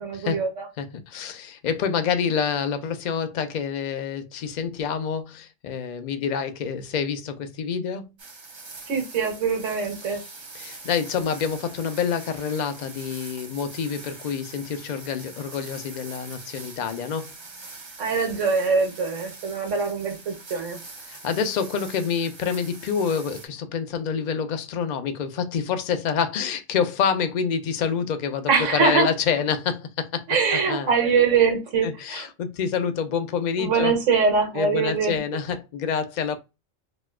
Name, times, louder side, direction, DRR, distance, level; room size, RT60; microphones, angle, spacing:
voice 1, 0.0-0.7 8.9-10.2 18.0-20.8 28.5-29.1 30.3-32.3 33.6-35.2, right 5 dB, 85° right, 1.4 m, -23 dB
voice 2, 0.8-8.1 10.5-17.3 21.1-30.2 30.5-30.9 31.8-33.9 34.6-36.4, left 7 dB, 55° left, 0.5 m, -27 dB
sound 1, 8.2-23.5, right 3 dB, 35° right, 0.5 m, -43 dB
4.1 x 2.2 x 2.2 m
omnidirectional pair, 1.2 m